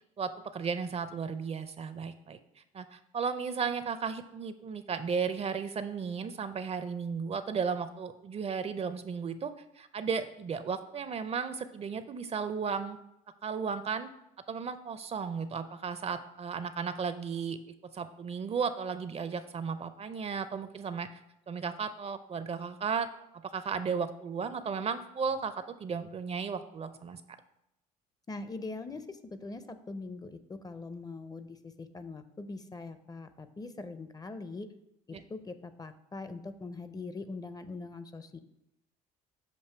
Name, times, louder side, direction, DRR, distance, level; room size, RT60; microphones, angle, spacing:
voice 1, 0.2-2.4 2.7-13.0 13.4-14.1 14.5-17.6 17.9-21.1 21.5-23.1 23.5-27.2 35.1-35.2, right 6 dB, 35° right, 11 dB, 0.5 m, -34 dB
voice 2, 28.3-34.7 35.1-38.4, left 3 dB, 20° left, 11 dB, 0.5 m, -42 dB
6.8 x 2.6 x 5.5 m, 0.83 s
hypercardioid pair, 65°, 17 cm